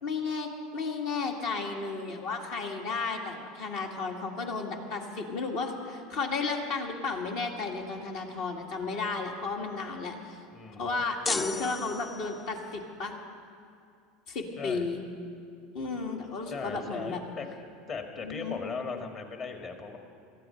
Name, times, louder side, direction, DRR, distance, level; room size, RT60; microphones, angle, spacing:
voice 1, 0.0-10.4 10.8-13.1 14.3-15.0 15.7-17.2 18.2-18.6, left 4 dB, 65° left, 2 dB, 2.1 m, -33 dB
voice 2, 10.5-10.9 14.6-14.8 16.5-17.5 17.9-20.0, left 5 dB, 40° left, 4 dB, 2.0 m, -38 dB
sound 1, 11.2-12.6, left 3 dB, 15° left, 0.3 m, -34 dB
18.0 x 13.5 x 4.6 m, 2.4 s
hypercardioid pair, 85°, 0 cm